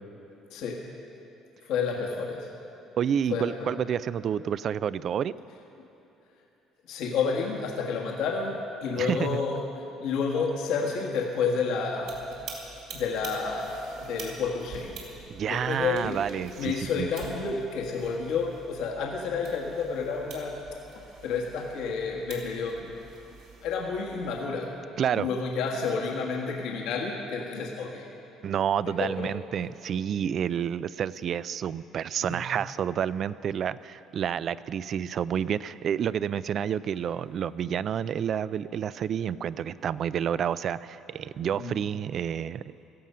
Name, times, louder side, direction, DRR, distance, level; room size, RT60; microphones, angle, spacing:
voice 1, 0.5-0.8 1.6-2.5 3.3-3.7 6.9-9.7 10.0-12.3 12.9-15.0 15.4-16.2 16.6-20.6 20.9-22.9 23.6-24.7 25.1-28.1 29.0-29.3 32.2-32.4 41.6-41.7, left 5 dB, 80° left, -1 dB, 1.5 m, -30 dB
voice 2, 3.0-5.3 9.0-9.4 15.3-17.1 25.0-25.3 28.4-42.7, right 8 dB, 50° right, 17 dB, 0.3 m, -29 dB
sound 1, 12.0-24.4, right 5 dB, 75° right, 3.5 m, -47 dB
16.5 x 13.5 x 5.6 m, 2.9 s
cardioid pair, 120°, 0 cm